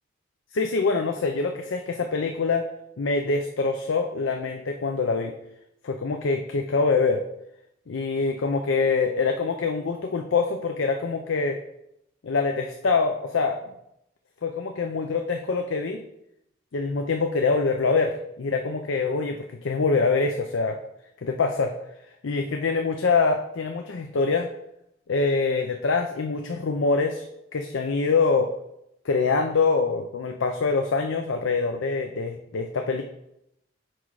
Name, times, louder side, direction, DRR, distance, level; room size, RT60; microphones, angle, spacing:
voice 1, 0.5-2.7 3.0-5.3 5.8-7.2 7.9-11.6 12.2-13.6 14.4-16.0 16.7-20.8 21.2-21.7 22.2-24.5 25.1-27.2 27.5-28.5 29.0-33.0, left 4 dB, 80° left, 5 dB, 0.5 m, -24 dB
6.0 x 4.8 x 4.7 m, 0.81 s
head